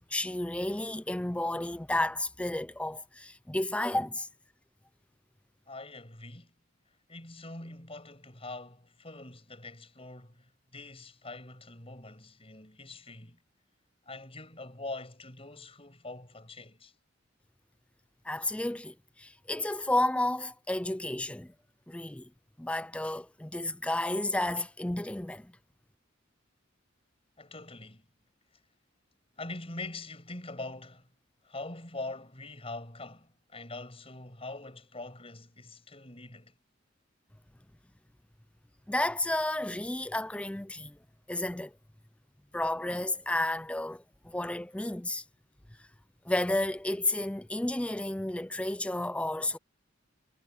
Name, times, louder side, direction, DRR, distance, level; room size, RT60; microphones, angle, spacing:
voice 1, 0.1-4.3 18.3-21.5 21.9-22.3 22.6-25.5 38.9-41.0 41.3-41.7 42.5-45.2 46.3-49.6, left 1 dB, 5° left, 0.4 m, -32 dB
voice 2, 5.7-6.5 7.1-13.4 14.1-16.9 27.4-28.0 29.3-31.1 31.4-36.5, left 2 dB, 30° left, 6.9 m, -43 dB
head